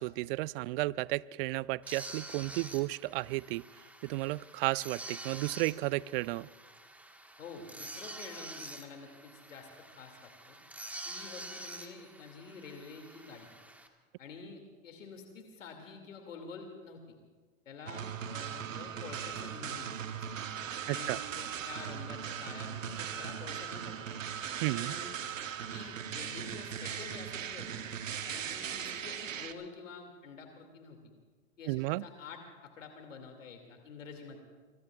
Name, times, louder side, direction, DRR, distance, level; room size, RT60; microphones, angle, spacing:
voice 1, 0.0-3.7 4.0-6.5 20.9-21.2 24.6-24.9 31.7-32.0, right 20 dB, 50° right, 22 dB, 0.4 m, -33 dB
sound 1, 1.8-13.9, right 1 dB, 5° right, 1.4 m, -47 dB
voice 2, 7.4-10.6 11.1-13.5 14.2-17.2 17.7-20.3 20.9-24.2 24.7-25.2 25.7-27.9 28.2-31.0 31.6-34.4, left 4 dB, 80° left, 3 dB, 2.5 m, -48 dB
sound 2, 17.8-29.5, right 8 dB, 85° right, 1.2 m, -39 dB
25.0 x 24.0 x 2.4 m, 1.5 s
hypercardioid pair, 105°, 38 cm